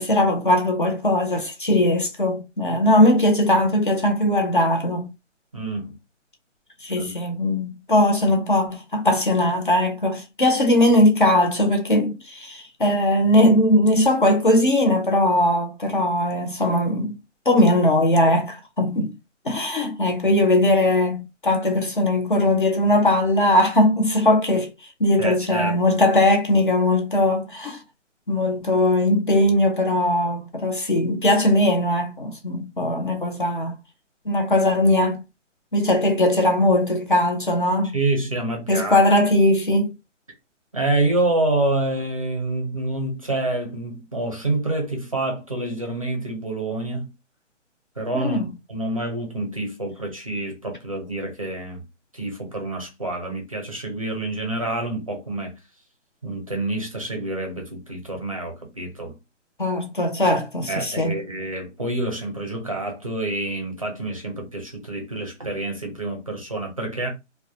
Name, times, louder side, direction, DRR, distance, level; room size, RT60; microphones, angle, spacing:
voice 1, 0.0-5.1 6.8-17.2 17.5-19.1 19.5-24.7 25.0-27.8 28.3-33.7 34.3-35.2 35.7-38.0 38.7-39.9 48.1-48.5 59.6-61.1, left 1 dB, 45° left, 0.5 m, -20 dB
voice 2, 5.5-6.0 7.0-7.1 25.2-25.8 37.9-39.0 40.7-47.1 48.0-48.4 48.7-51.8 52.1-55.5 56.2-59.1 60.7-67.1, right 2 dB, 30° right, 0.5 m, -27 dB
2.2 x 2.1 x 2.7 m
hypercardioid pair, 165°, 37 cm